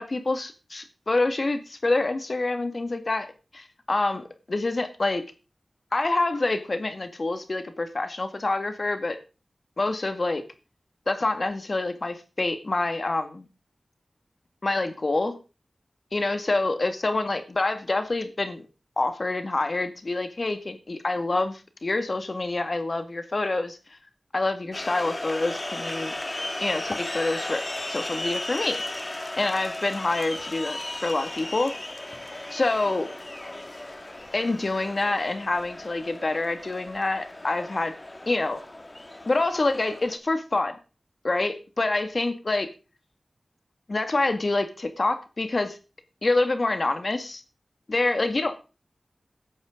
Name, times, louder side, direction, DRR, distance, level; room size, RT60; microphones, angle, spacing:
voice 1, 0.0-3.3 3.5-5.2 5.9-9.2 9.8-10.4 11.1-13.5 14.6-15.4 16.1-18.6 19.0-24.0 24.3-26.1 26.6-27.6 27.9-28.8 29.4-31.7 32.5-33.1 34.3-37.9 38.3-38.6 39.3-40.8 41.2-42.7 43.9-45.8 46.2-47.4 47.9-48.6, left 2 dB, 55° left, 7 dB, 2.0 m, -26 dB
sound 1, 24.7-40.2, left 1 dB, 30° left, 2.0 m, -36 dB
15.0 x 11.0 x 3.8 m, 0.33 s
wide cardioid pair, 50°, 0 cm